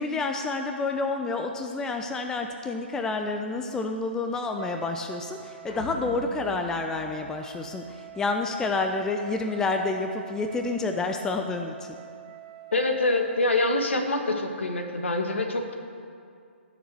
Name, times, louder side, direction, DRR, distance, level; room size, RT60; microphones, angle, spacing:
voice 1, 0.0-11.9, left 3 dB, 10° left, 5 dB, 0.6 m, -29 dB
Wind instrument woodwind instrument, 4.5-13.9, right 13 dB, 35° right, 0.8 m, -46 dB
sound 1, 5.7-8.1, left 2 dB, 50° left, 3.9 m, -42 dB
voice 2, 12.7-15.8, left 2 dB, 70° left, 4 dB, 2.1 m, -25 dB
17.0 x 7.0 x 7.9 m, 2.3 s
figure-of-eight pair, 130°, 7 cm